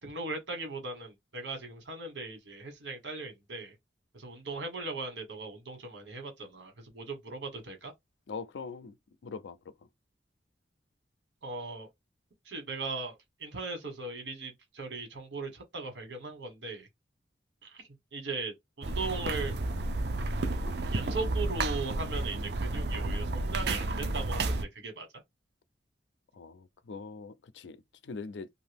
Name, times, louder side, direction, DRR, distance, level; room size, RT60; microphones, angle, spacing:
voice 1, 0.0-3.7 4.1-7.9 11.4-11.9 12.4-16.9 17.6-17.8 18.1-19.5 20.9-25.1, right 3 dB, 85° right, 1.3 m, -38 dB
voice 2, 8.3-9.0 9.2-9.7 26.3-28.5, left 4 dB, 80° left, 0.4 m, -42 dB
sound 1, 18.8-24.6, right 2 dB, 65° right, 0.5 m, -31 dB
2.7 x 2.5 x 3.4 m
head